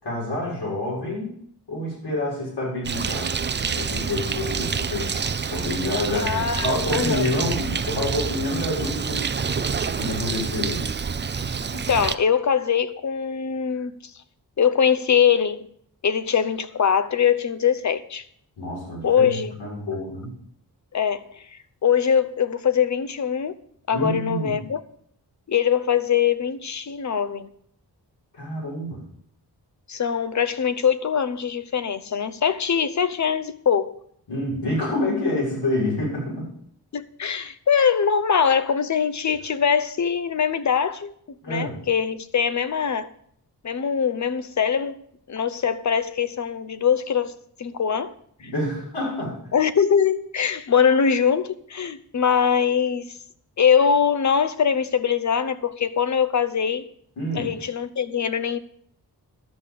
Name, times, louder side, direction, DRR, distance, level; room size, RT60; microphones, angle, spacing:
voice 1, 0.0-1.4 1.7-3.3 3.7-5.2 5.5-6.3 6.6-10.9 18.6-20.3 23.9-24.5 28.3-29.0 34.3-36.5 41.4-41.8 48.4-49.5 57.2-57.5, left 1 dB, 85° left, 6.7 m, -28 dB
Bird, 2.8-12.2, right 6 dB, 30° right, 0.5 m, -27 dB
voice 2, 6.1-7.3 11.7-13.9 14.6-15.7 16.0-18.2 19.0-19.5 20.9-21.4 21.8-23.5 23.9-24.8 25.5-27.5 29.9-34.0 36.9-41.1 41.5-43.1 43.6-45.0 45.3-48.2 49.5-53.2 53.6-56.9 57.3-58.6, left 7 dB, 45° left, 0.8 m, -22 dB
12.0 x 6.7 x 7.7 m
wide cardioid pair, 120°, 40 cm